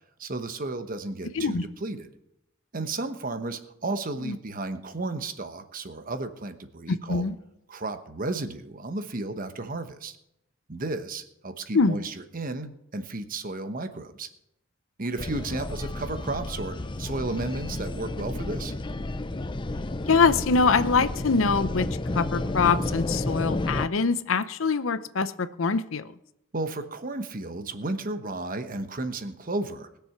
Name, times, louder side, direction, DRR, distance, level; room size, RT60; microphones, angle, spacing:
voice 1, 0.2-2.1 2.7-7.2 7.7-10.2 10.7-14.3 15.0-18.7 26.5-29.9, right 2 dB, 45° right, 1.1 m, -33 dB
voice 2, 6.9-7.3 11.7-12.0 20.1-21.9 22.1-26.1, left 4 dB, 75° left, 0.7 m, -24 dB
sound 1, 15.2-23.9, left 2 dB, 25° left, 0.5 m, -31 dB
20.5 x 6.9 x 5.9 m
head